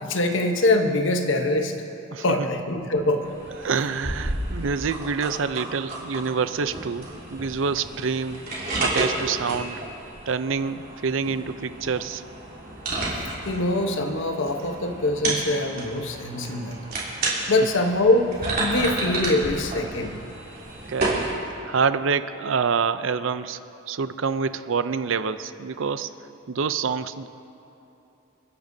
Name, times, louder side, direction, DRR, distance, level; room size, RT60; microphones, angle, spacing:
voice 1, 0.0-1.8 2.2-3.3 13.4-16.8 17.5-20.1, left 2 dB, 65° left, 5 dB, 1.0 m, -23 dB
voice 2, 2.1-2.5 3.6-8.4 8.8-9.8 10.3-12.2 20.9-21.3 21.7-23.6 23.9-26.1 26.5-27.3, right 5 dB, 70° right, 12 dB, 0.5 m, -26 dB
sound 1, 3.2-21.3, right 2 dB, 45° right, 3.4 m, -32 dB
30.0 x 10.0 x 2.7 m, 2.9 s
head